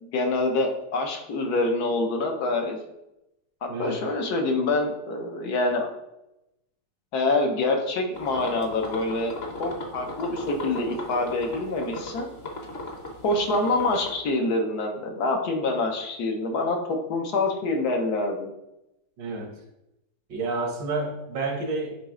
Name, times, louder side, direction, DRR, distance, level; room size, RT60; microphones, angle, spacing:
voice 1, 0.0-2.8 3.6-5.9 7.1-12.3 13.2-18.5, left 2 dB, 65° left, 3 dB, 1.4 m, -26 dB
voice 2, 3.7-4.0 19.2-19.6 20.3-22.0, right 3 dB, 85° right, 3 dB, 1.8 m, -29 dB
sound 1, 8.2-14.1, left 2 dB, 40° left, 1.1 m, -37 dB
9.0 x 3.1 x 3.7 m, 0.89 s
omnidirectional pair, 1.9 m